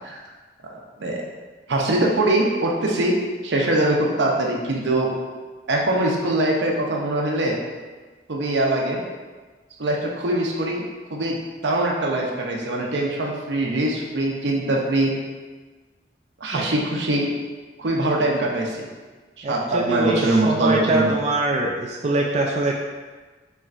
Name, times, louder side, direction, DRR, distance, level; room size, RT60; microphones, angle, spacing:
voice 1, 0.7-1.2 1.7-3.1 3.4-5.1 5.7-7.6 8.3-9.0 9.8-10.8 11.1-11.4 11.6-15.1 16.4-17.3 17.8-18.9 19.4-21.1, right 1 dB, 85° right, -1 dB, 0.7 m, -22 dB
voice 2, 19.4-22.8, right 2 dB, 40° right, -1 dB, 0.3 m, -23 dB
4.4 x 3.1 x 2.5 m, 1.3 s
head